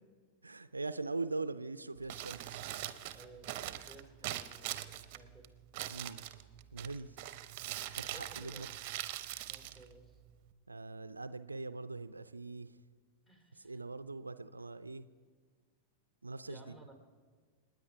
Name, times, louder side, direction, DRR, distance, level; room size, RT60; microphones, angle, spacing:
voice 1, 0.4-2.6 5.9-6.3 6.7-7.2 7.9-8.7 10.7-12.8 13.5-15.1 16.2-16.8, right 3 dB, 80° right, 14 dB, 0.5 m, -42 dB
Crumpling crinkling, 2.0-10.5, right 13 dB, 45° right, 0.8 m, -43 dB
voice 2, 3.1-5.5 8.1-8.7 9.4-10.2 13.3-13.8 16.5-16.9, right 1 dB, 15° left, 4 dB, 3.2 m, -57 dB
28.5 x 9.7 x 4.7 m, 1.5 s
figure-of-eight pair, 90°, 0 cm